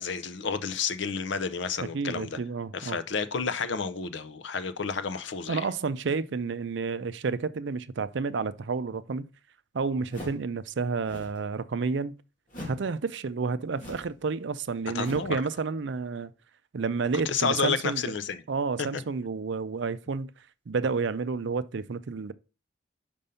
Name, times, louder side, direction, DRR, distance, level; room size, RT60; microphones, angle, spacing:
voice 1, 0.0-2.4 2.7-5.6 14.9-15.4 17.3-18.4 18.8-19.0, left 5 dB, 65° left, 0.6 m, -30 dB
voice 2, 1.8-3.0 5.5-9.3 9.7-12.2 12.7-16.3 16.7-18.0 18.5-20.3 20.7-22.3, right 4 dB, 65° right, 0.5 m, -30 dB
sound 1, 10.1-10.5 11.0-11.4 12.5-12.9 13.7-14.2 15.0-15.4, left 1 dB, 40° left, 2.7 m, -42 dB
5.3 x 5.2 x 5.5 m
head